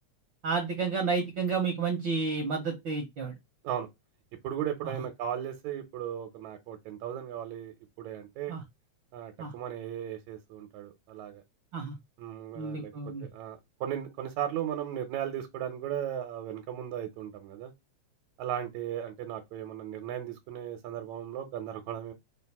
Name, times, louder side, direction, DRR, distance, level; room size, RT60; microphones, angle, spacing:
voice 1, 0.4-3.3 4.8-5.0 8.5-8.6 9.4-9.5 11.7-12.0 12.5-13.3, right 5 dB, 55° right, 1.5 m, -31 dB
voice 2, 4.4-8.6 9.1-11.4 12.2-12.9 13.2-17.7 18.4-22.1, right 10 dB, 75° right, 2.2 m, -36 dB
4.5 x 3.4 x 3.4 m
omnidirectional pair, 3.4 m